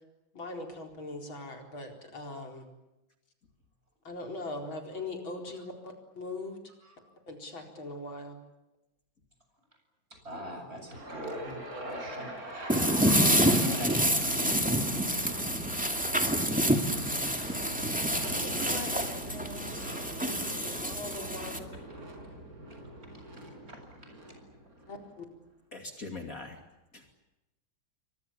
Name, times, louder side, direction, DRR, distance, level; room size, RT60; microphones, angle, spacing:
voice 1, 0.3-2.7 4.1-6.6 7.3-8.4 18.2-19.8 20.2-21.7 24.9-25.3, left 2 dB, 85° left, 3 dB, 5.1 m, -41 dB
voice 2, 10.2-14.2 16.8-18.0 19.8-19.9 23.7-23.8, equal, 30° right, 4 dB, 8.2 m, -42 dB
sound 1, 10.9-25.0, right 1 dB, 45° right, 5.9 m, -42 dB
sound 2, 12.7-21.6, equal, 5° right, 2.3 m, -28 dB
voice 3, 25.7-26.6 26.9-27.1, left 3 dB, 45° left, 4 dB, 3.1 m, -41 dB
29.5 x 24.0 x 7.2 m, 0.96 s
omnidirectional pair, 2.1 m